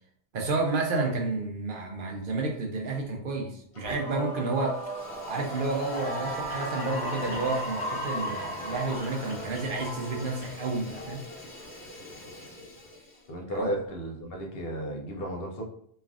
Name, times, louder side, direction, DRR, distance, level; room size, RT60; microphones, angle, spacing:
voice 1, 0.3-4.8 5.3-11.2 13.5-13.7, right 3 dB, 60° right, 2 dB, 0.7 m, -30 dB
Fire, 3.7-4.3 4.5-13.3, left 2 dB, 85° left, 1.1 m, -45 dB
Male singing / Female singing / Musical instrument, 3.8-10.4, right 3 dB, 35° right, 0.9 m, -40 dB
Cheering / Applause, 5.2-11.7, left 1 dB, 40° left, 1.3 m, -37 dB
voice 2, 13.3-15.6, equal, 70° left, 0 dB, 0.9 m, -34 dB
3.1 x 2.4 x 2.4 m, 0.65 s
omnidirectional pair, 1.1 m